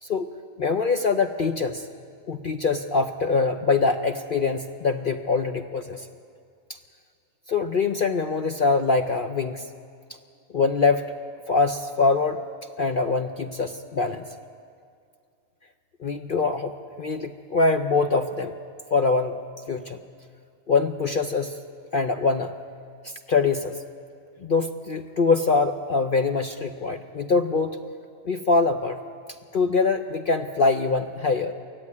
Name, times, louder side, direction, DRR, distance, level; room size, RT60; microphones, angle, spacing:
voice 1, 0.6-1.8 2.3-6.0 7.5-9.7 10.5-11.0 11.5-12.4 12.8-14.2 16.0-16.7 17.0-18.5 18.9-19.4 19.7-20.0 20.7-21.6 21.9-22.5 23.0-23.7 24.4-27.8 28.2-29.0 29.5-31.5, left 4 dB, 50° left, 6 dB, 0.7 m, -23 dB
23.0 x 14.5 x 9.7 m, 2.3 s
omnidirectional pair, 1.6 m